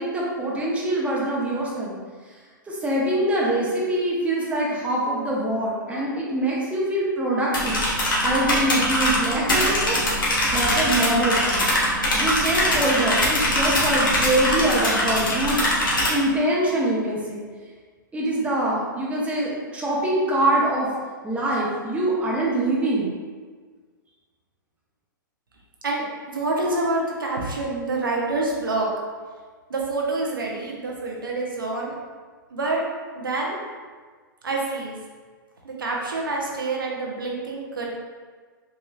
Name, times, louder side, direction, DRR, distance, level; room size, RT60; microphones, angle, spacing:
voice 1, 0.0-1.9 2.7-7.8 8.2-10.0 10.5-11.6 12.1-15.7 16.1-17.4 18.1-20.9 21.2-23.2, right 1 dB, 10° right, -5 dB, 0.9 m, -24 dB
sound 1, 7.5-16.1, left 1 dB, 80° left, 1.1 m, -22 dB
voice 2, 25.8-28.9 29.7-31.9 32.5-32.8 33.1-33.6 34.4-35.0 35.6-37.9, right 2 dB, 85° right, -2 dB, 0.7 m, -27 dB
4.1 x 3.0 x 2.4 m, 1.5 s
hypercardioid pair, 110°, 11 cm